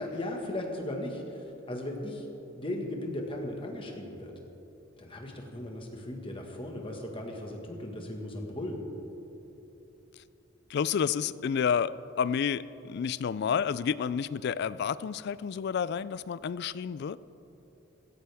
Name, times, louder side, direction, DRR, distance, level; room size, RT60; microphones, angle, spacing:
voice 1, 0.0-2.3 2.5-4.3 5.0-8.8, left 1 dB, 25° left, 1 dB, 1.6 m, -37 dB
voice 2, 10.7-17.2, left 7 dB, 55° left, 18 dB, 0.3 m, -30 dB
16.5 x 15.5 x 3.5 m, 3.0 s
head